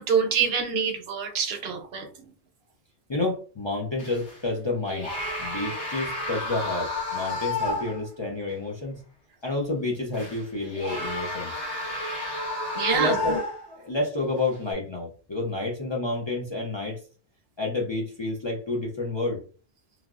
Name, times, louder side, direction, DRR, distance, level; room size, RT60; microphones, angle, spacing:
voice 1, 0.0-2.1 12.8-13.4, right 6 dB, 70° right, 0.9 m, -26 dB
voice 2, 3.1-5.1 5.4-9.0 9.4-11.5 12.9-13.4 13.7-17.0 17.6-19.4, left 2 dB, 35° left, 0.5 m, -29 dB
sound 1, 4.0-4.4 4.9-8.1 8.5-8.6 10.1-13.8 14.5-14.7, left 1 dB, 65° left, 1.7 m, -31 dB
3.2 x 2.3 x 2.4 m
omnidirectional pair, 1.1 m